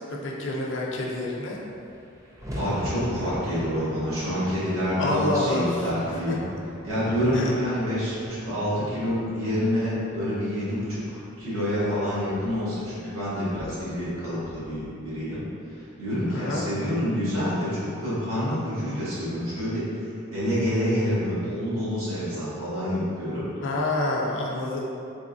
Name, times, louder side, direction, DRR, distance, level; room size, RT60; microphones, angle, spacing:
voice 1, 0.1-1.6 5.0-6.4 7.3-7.5 16.3-16.7 23.6-24.9, left 1 dB, 60° left, -2 dB, 0.5 m, -28 dB
sound 1, 1.2-1.3 1.5-15.9, equal, 15° right, 0.3 m, -41 dB
voice 2, 2.6-6.4 6.8-15.4 15.7-19.9 20.3-23.5, equal, 80° right, -10 dB, 1.3 m, -27 dB
3.4 x 3.3 x 2.6 m, 2.6 s
head